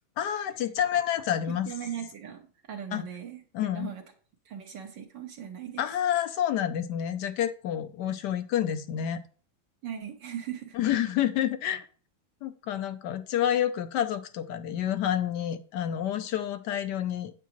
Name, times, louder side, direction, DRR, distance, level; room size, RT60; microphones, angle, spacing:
voice 1, 0.2-1.7 2.9-3.0 3.5-3.9 5.8-9.2 10.7-11.9 12.4-17.3, left 10 dB, 70° left, 11 dB, 1.2 m, -29 dB
voice 2, 1.5-4.0 4.5-5.8 9.8-10.8, right 9 dB, 70° right, 2 dB, 1.9 m, -39 dB
8.4 x 8.2 x 3.0 m, 0.40 s
omnidirectional pair, 2.1 m